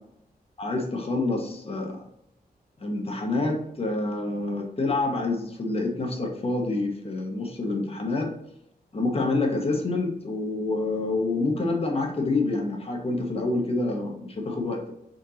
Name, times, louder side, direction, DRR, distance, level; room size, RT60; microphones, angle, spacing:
voice 1, 0.6-2.0 2.8-8.3 8.9-14.9, left 2 dB, 40° left, 2 dB, 1.0 m, -27 dB
4.3 x 3.9 x 2.8 m, 0.79 s
wide cardioid pair, 110°, 16 cm